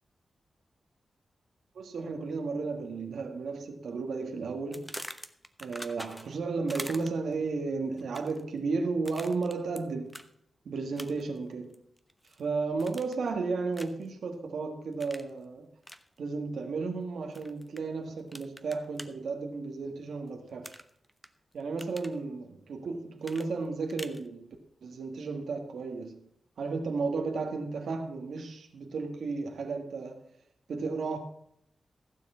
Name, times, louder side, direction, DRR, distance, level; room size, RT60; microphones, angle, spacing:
voice 1, 1.8-4.9 5.6-10.2 10.7-11.8 12.4-15.7 16.2-20.8 21.5-24.6 24.8-26.2 26.6-30.2 30.7-31.2, right 4 dB, 85° right, 1.7 m, -33 dB
sound 1, 4.7-6.4 6.7-7.3 8.0-8.4 9.1-9.8 10.1-10.3 11.0-11.4 11.7-12.4 12.8-13.3 13.7-14.1 15.0-15.3 15.8-16.0 17.3-17.8 18.3-19.1 20.6-21.3 21.6-22.2 23.2-24.2, equal, 5° left, 0.9 m, -44 dB
15.5 x 7.2 x 5.7 m
cardioid pair, 85°, 0 cm